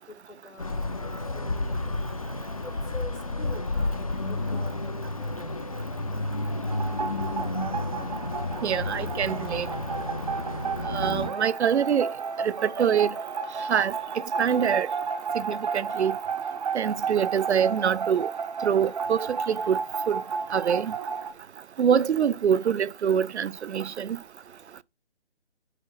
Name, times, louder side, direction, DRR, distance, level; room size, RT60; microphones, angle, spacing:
voice 1, 0.1-2.0 2.6-5.6, left 3 dB, 90° left, 1.5 m, -45 dB
sound 1, 0.6-11.3, left 2 dB, 35° left, 0.4 m, -31 dB
sound 2, 6.7-21.3, right 5 dB, 35° right, 0.6 m, -32 dB
voice 2, 8.6-9.7 10.9-12.1 12.6-13.1 13.7-13.9 14.4-14.9 15.3-16.2 16.7-18.3 18.6-19.8 20.1-20.2 20.5-20.9 21.8-24.2, right 8 dB, 75° right, 0.5 m, -25 dB
10.0 x 3.9 x 4.0 m
figure-of-eight pair, 145°, 34 cm